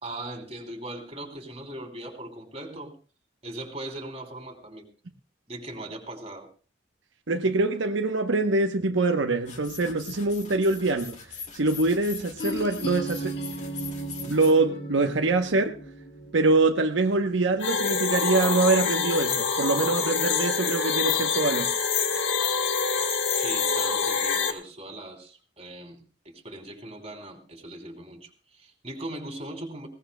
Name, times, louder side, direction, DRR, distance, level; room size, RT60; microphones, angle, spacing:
voice 1, 0.0-2.9 3.4-4.8 5.5-6.5 14.2-14.4 23.3-29.9, right 1 dB, 30° right, 2.9 m, -39 dB
voice 2, 7.3-11.2 11.5-13.4 14.3-15.8 16.3-21.7, right 3 dB, 80° right, 0.9 m, -24 dB
sound 1, 9.4-14.5, left 6 dB, 35° left, 2.1 m, -42 dB
sound 2, 12.4-18.2, right 1 dB, 60° left, 1.5 m, -37 dB
sound 3, 17.6-24.5, left 5 dB, 75° left, 1.5 m, -26 dB
21.0 x 17.5 x 2.2 m
head